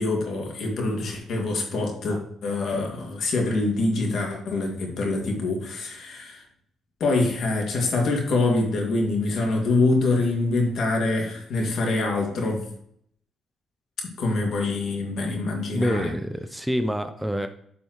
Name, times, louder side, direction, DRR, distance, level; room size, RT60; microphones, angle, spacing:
voice 1, 0.0-6.4 7.0-12.7 14.2-16.1, left 2 dB, 65° left, 1 dB, 2.4 m, -25 dB
voice 2, 15.7-17.5, equal, 5° right, 8 dB, 0.6 m, -26 dB
10.0 x 5.4 x 3.2 m, 0.67 s
cardioid pair, 90°, 0 cm